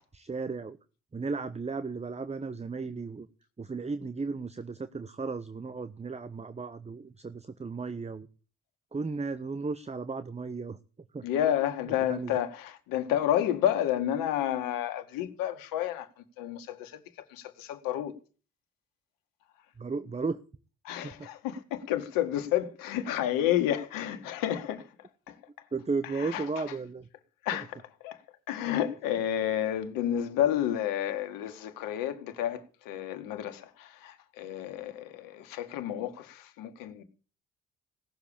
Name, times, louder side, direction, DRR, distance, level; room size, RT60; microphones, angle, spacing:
voice 1, 0.1-0.8 1.1-3.3 3.6-8.3 8.9-10.8 11.1-11.2 12.1-12.3 19.8-20.4 21.0-21.3 25.7-27.1, right 4 dB, 20° right, 1.0 m, -35 dB
voice 2, 11.2-18.1 20.8-24.9 25.3-25.4 26.0-26.6 27.4-28.2 28.5-37.0, left 11 dB, 75° left, 1.8 m, -30 dB
17.5 x 7.1 x 8.7 m
hypercardioid pair, 50°, 34 cm